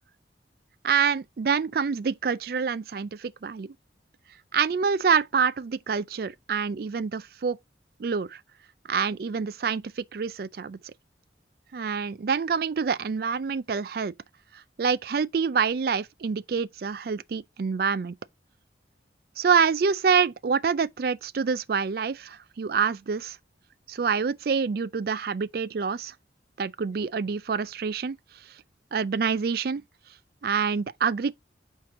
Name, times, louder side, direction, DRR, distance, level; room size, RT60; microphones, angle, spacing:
voice 1, 0.8-3.7 4.5-7.6 8.0-8.4 8.9-10.8 11.7-14.1 14.8-18.1 19.4-23.4 23.9-26.1 26.6-28.2 28.9-29.8 30.4-31.3, right 6 dB, 55° right, 0.4 m, -26 dB
5.9 x 4.6 x 3.6 m
head